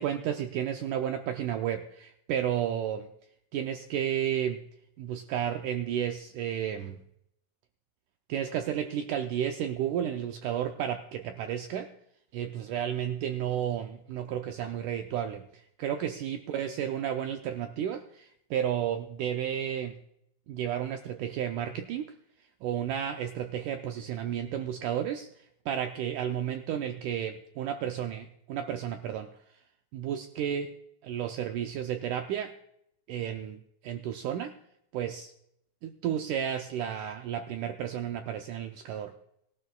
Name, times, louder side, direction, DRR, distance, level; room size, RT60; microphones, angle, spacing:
voice 1, 0.0-3.1 3.5-4.6 5.0-7.0 8.3-11.9 12.3-20.0 20.5-22.2 22.6-29.3 29.9-30.8 31.0-32.5 33.1-34.5 34.9-35.3 35.8-39.1, right 9 dB, 90° right, 6 dB, 1.8 m, -32 dB
19.5 x 12.5 x 2.3 m, 0.75 s
omnidirectional pair, 4.3 m